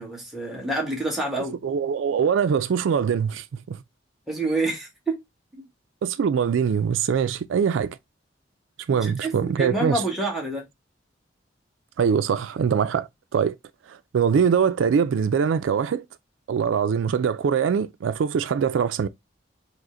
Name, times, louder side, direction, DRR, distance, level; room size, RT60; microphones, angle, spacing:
voice 1, 0.0-1.6 4.3-5.2 8.9-10.7, right 2 dB, ahead, 1.2 m, -28 dB
voice 2, 1.6-3.8 6.0-8.0 8.9-10.0 12.0-13.1 13.3-13.6 13.9-16.0 16.5-19.1, right 7 dB, 80° right, 0.3 m, -23 dB
5.0 x 2.1 x 3.7 m
head